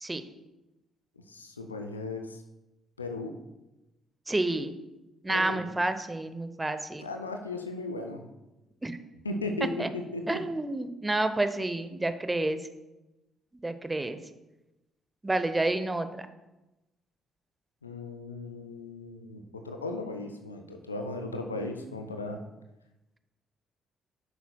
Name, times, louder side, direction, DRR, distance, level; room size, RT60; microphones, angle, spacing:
voice 1, 1.2-2.4 3.0-3.3 5.3-5.6 7.0-8.3 9.2-10.4 17.8-22.4, left 2 dB, 85° left, 5 dB, 0.5 m, -36 dB
voice 2, 4.3-4.7 5.2-7.0 8.8-9.0 9.8-9.9 10.3-12.6 13.6-14.2 15.2-16.3, right 2 dB, 15° right, 10 dB, 0.7 m, -29 dB
10.5 x 6.9 x 2.3 m, 0.99 s
figure-of-eight pair, 45°, 0 cm